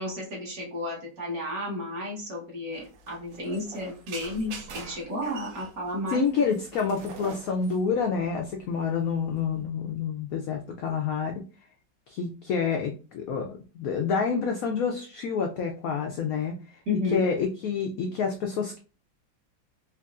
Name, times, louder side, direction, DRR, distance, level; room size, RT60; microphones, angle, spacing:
voice 1, 0.0-6.6 16.9-17.3, left 1 dB, 50° right, -3 dB, 1.7 m, -32 dB
sound 1, 2.7-9.6, right 5 dB, 75° right, 1.3 m, -45 dB
voice 2, 6.1-11.4 12.1-13.5 13.7-16.6 17.1-18.8, left 6 dB, 80° left, 3 dB, 0.7 m, -28 dB
4.6 x 2.6 x 2.5 m, 0.36 s
omnidirectional pair, 2.0 m